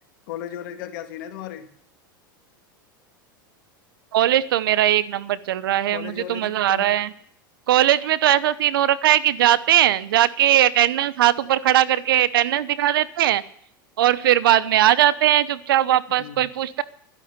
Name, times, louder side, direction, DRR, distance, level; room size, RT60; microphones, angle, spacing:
voice 1, 0.3-1.7 5.9-6.8 16.2-16.4, left 11 dB, 65° left, 6 dB, 2.3 m, -35 dB
voice 2, 4.1-7.1 7.7-13.4 14.0-16.8, right 12 dB, 80° right, 18 dB, 0.9 m, -19 dB
12.0 x 11.0 x 9.6 m, 0.66 s
hypercardioid pair, 110°, 12 cm